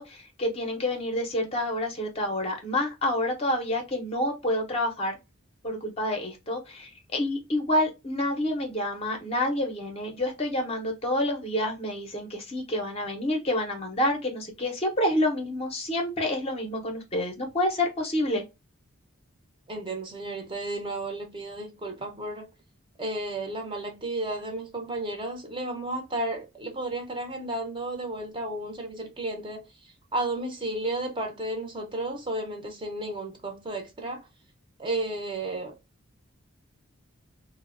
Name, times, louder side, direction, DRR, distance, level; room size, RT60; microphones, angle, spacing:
voice 1, 0.0-5.2 5.6-18.4, left 1 dB, 30° left, 0.5 m, -28 dB
voice 2, 19.7-22.5 23.0-34.3 34.8-35.7, right 2 dB, 25° right, 0.5 m, -33 dB
2.9 x 2.0 x 2.3 m
head